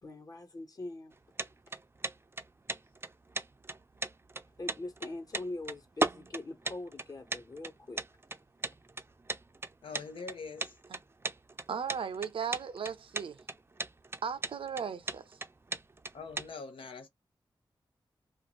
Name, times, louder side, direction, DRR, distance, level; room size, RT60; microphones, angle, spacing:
voice 1, 0.0-1.1 4.6-8.0, left 2 dB, 45° left, 1.1 m, -42 dB
sound 1, 1.1-16.5, right 3 dB, 25° right, 0.5 m, -37 dB
voice 2, 9.8-10.8 16.1-17.1, left 4 dB, 80° left, 0.7 m, -43 dB
voice 3, 11.7-13.4 14.2-15.4, right 7 dB, 80° right, 0.6 m, -36 dB
2.5 x 2.4 x 3.0 m
cardioid pair, 65°, 9 cm